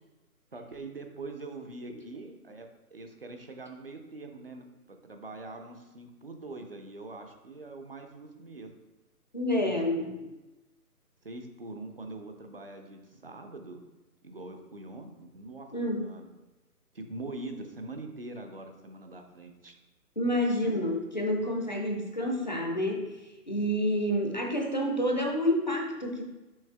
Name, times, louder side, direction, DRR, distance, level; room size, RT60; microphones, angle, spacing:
voice 1, 0.5-8.8 9.6-10.3 11.2-13.8 14.2-15.7 16.0-16.3 16.9-19.7 20.6-20.8, right 2 dB, 40° right, 5 dB, 0.6 m, -43 dB
voice 2, 9.3-10.1 15.7-16.1 20.2-26.2, equal, 30° left, 1 dB, 0.6 m, -29 dB
6.4 x 4.9 x 3.5 m, 1.1 s
hypercardioid pair, 165°, 46 cm